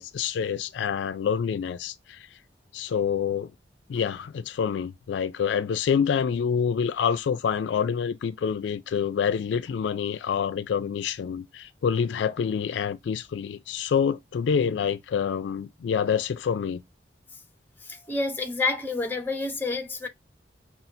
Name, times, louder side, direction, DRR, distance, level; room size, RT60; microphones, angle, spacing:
voice 1, 0.0-2.3 2.7-3.5 3.9-16.8, left 7 dB, 80° left, 0.3 m, -27 dB
voice 2, 17.8-20.1, left 3 dB, 10° left, 0.8 m, -29 dB
5.6 x 2.4 x 2.5 m
head